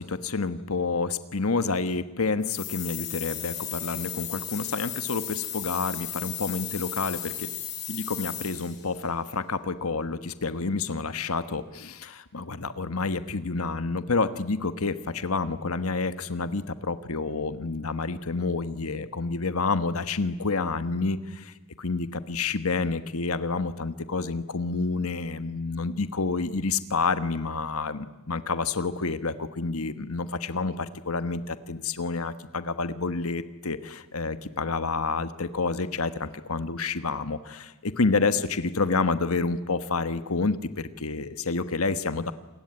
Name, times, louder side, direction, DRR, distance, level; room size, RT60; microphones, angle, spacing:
voice 1, 0.0-7.5 7.9-42.3, left 4 dB, 80° left, 12 dB, 1.3 m, -29 dB
sound 1, 2.4-8.8, left 11 dB, 50° left, 8.0 m, -35 dB
28.0 x 21.5 x 9.8 m, 1.1 s
head